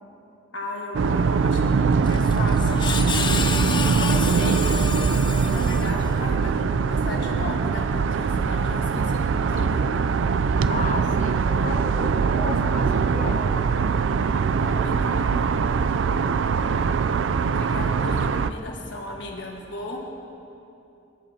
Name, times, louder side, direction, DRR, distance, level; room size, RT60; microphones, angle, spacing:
voice 1, 0.5-3.5 3.8-4.6 5.5-9.9 14.5-15.6 17.4-20.1, left 2 dB, 70° left, -1 dB, 1.5 m, -35 dB
sound 1, 0.9-18.5, right 5 dB, 85° right, 0.4 m, -22 dB
Screech, 2.0-6.3, left 5 dB, 25° left, 0.4 m, -31 dB
voice 2, 10.7-13.7, left 3 dB, 45° left, 3 dB, 1.1 m, -34 dB
22.5 x 11.0 x 2.8 m, 2.7 s
head